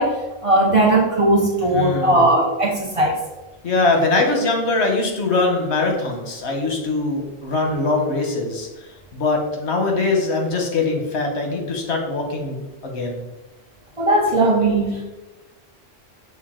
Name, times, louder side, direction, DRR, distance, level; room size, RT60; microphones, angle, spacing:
voice 1, 0.0-3.2 14.0-15.0, right 1 dB, 35° right, -2 dB, 0.7 m, -18 dB
voice 2, 1.7-2.3 3.6-13.2, left 3 dB, 85° left, 2 dB, 1.2 m, -22 dB
6.3 x 2.3 x 3.6 m, 1.1 s
omnidirectional pair, 1.1 m